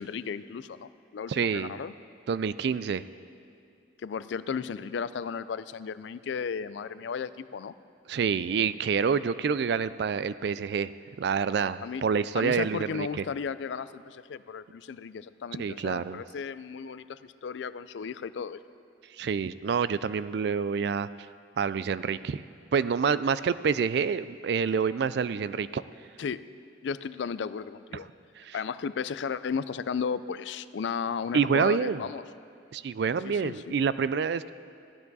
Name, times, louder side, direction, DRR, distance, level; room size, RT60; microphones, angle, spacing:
voice 1, 0.0-1.9 4.0-7.7 11.8-12.0 12.4-18.6 26.2-26.4 26.8-28.1 28.5-32.2 33.2-33.8, left 6 dB, 70° left, 15 dB, 0.4 m, -34 dB
voice 2, 1.3-1.8 2.3-3.0 8.1-10.9 11.2-13.1 15.6-16.2 19.2-21.1 21.6-22.4 22.7-25.8 28.4-28.6 31.3-32.1 32.7-34.5, right 6 dB, 60° right, 15 dB, 0.3 m, -27 dB
15.5 x 12.0 x 4.0 m, 2.4 s
head